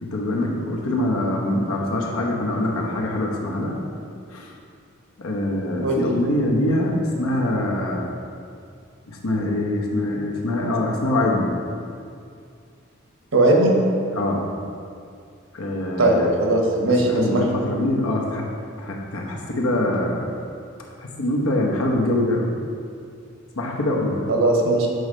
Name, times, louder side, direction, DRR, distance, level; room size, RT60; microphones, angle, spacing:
voice 1, 0.0-3.8 4.3-4.5 5.2-8.0 9.1-11.5 14.2-14.4 15.5-16.3 16.8-18.5 18.8-20.3 21.0-22.5 23.6-24.2, left 1 dB, 85° left, -1 dB, 0.9 m, -24 dB
voice 2, 13.3-13.7 16.0-17.4 24.3-24.9, right 2 dB, 70° right, 0 dB, 1.0 m, -18 dB
7.8 x 3.2 x 5.0 m, 2.4 s
head